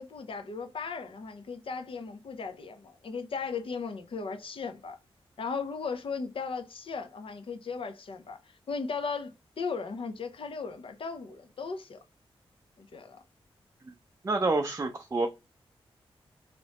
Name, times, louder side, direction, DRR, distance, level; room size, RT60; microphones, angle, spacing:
voice 1, 0.0-5.0 5.4-12.0 12.8-13.2, left 5 dB, 65° left, 0.6 m, -37 dB
voice 2, 14.2-15.3, right 3 dB, 30° right, 0.5 m, -27 dB
3.1 x 2.9 x 2.9 m
cardioid pair, 80°, 10 cm